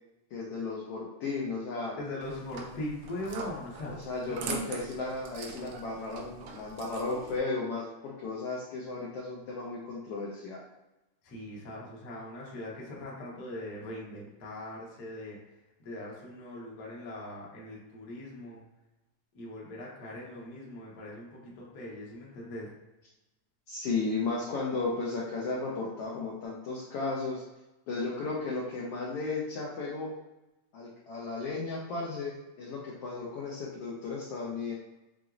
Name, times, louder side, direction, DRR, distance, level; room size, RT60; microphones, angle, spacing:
voice 1, 0.3-2.0 3.9-10.6 23.7-27.4 27.9-30.1 30.7-34.7, left 3 dB, 85° left, -4 dB, 1.3 m, -34 dB
voice 2, 1.9-4.6 5.6-5.7 11.2-15.4 15.8-18.6 19.3-22.7, left 1 dB, 70° left, -4 dB, 0.9 m, -41 dB
sound 1, 2.2-7.4, right 4 dB, 80° right, 2.2 m, -42 dB
6.3 x 3.0 x 2.4 m, 0.98 s
omnidirectional pair, 3.6 m